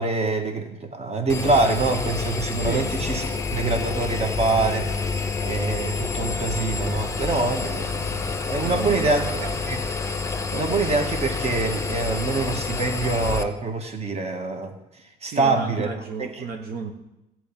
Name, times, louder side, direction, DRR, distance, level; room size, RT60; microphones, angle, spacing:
voice 1, 0.0-3.3 3.5-9.2 9.7-9.8 10.5-14.7 15.2-15.9 16.2-16.4, right 3 dB, 40° right, 5 dB, 1.7 m, -25 dB
Engine, 1.3-13.4, left 4 dB, 15° left, 0.8 m, -28 dB
voice 2, 8.6-9.6 15.2-16.9, right 5 dB, 65° right, 3 dB, 1.1 m, -32 dB
13.5 x 4.7 x 8.7 m, 0.94 s
cardioid pair, 110°, 17 cm